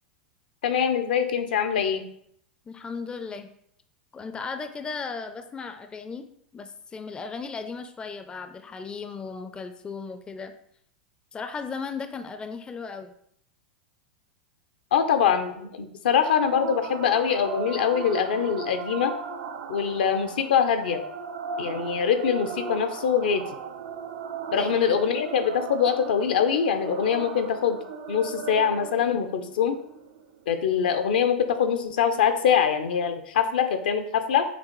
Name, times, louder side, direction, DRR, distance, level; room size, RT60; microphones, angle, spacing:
voice 1, 0.6-2.0 14.9-19.1 19.7-21.0 21.6-23.4 24.5-27.8 28.1-29.8 30.5-34.4, left 7 dB, 75° left, 8 dB, 0.5 m, -23 dB
voice 2, 2.7-3.5 4.1-6.3 6.5-10.5 11.3-13.1 24.5-24.7, left 5 dB, 15° left, 8 dB, 0.4 m, -36 dB
sound 1, 16.1-31.1, right 6 dB, 65° right, 0.4 m, -37 dB
6.0 x 2.4 x 3.0 m, 0.70 s
hypercardioid pair, 95°, 5 cm